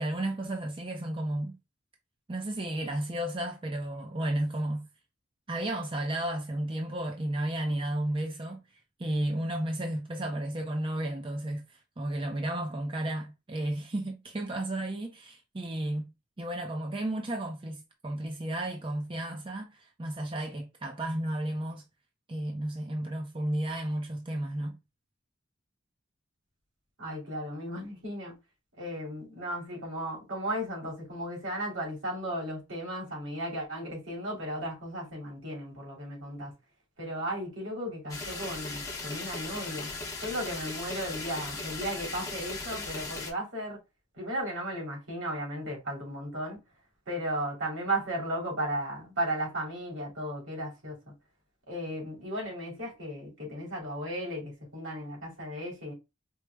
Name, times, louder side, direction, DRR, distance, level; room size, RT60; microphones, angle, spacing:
voice 1, 0.0-1.6 2.3-4.9 5.5-8.6 9.0-16.1 16.4-21.8 22.3-24.8, right 1 dB, 25° right, 0.5 m, -33 dB
voice 2, 27.0-28.4 28.8-36.5 37.0-39.9 40.2-43.8 44.1-46.6 47.1-51.1 51.7-55.9, right 1 dB, 80° right, 2.4 m, -35 dB
sound 1, 38.1-43.3, left 3 dB, 15° left, 0.7 m, -38 dB
4.6 x 2.0 x 3.2 m
head